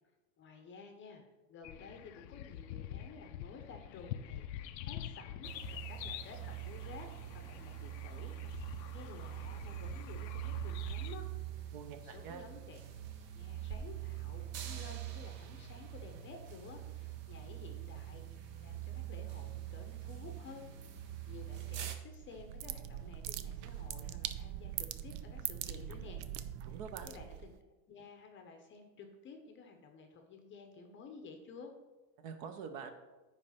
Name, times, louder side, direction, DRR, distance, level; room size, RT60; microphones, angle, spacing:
voice 1, 0.4-1.2 1.5-11.3 11.5-11.7 12.0-12.8 13.3-18.3 18.6-20.7 21.0-26.2 26.6-26.8 27.0-27.5 27.9-31.7, left 4 dB, 25° left, 5 dB, 0.7 m, -53 dB
sound 1, 1.6-11.2, left 11 dB, 90° left, 0.6 m, -46 dB
sound 2, 5.4-22.0, right 12 dB, 25° right, 0.3 m, -44 dB
voice 2, 11.7-12.4 26.7-27.1 32.2-32.9, right 6 dB, 45° right, 7 dB, 0.9 m, -45 dB
sound 3, 22.1-27.6, right 11 dB, 75° right, 0.6 m, -42 dB
9.6 x 3.3 x 5.7 m, 1.1 s
supercardioid pair, 140°, 49 cm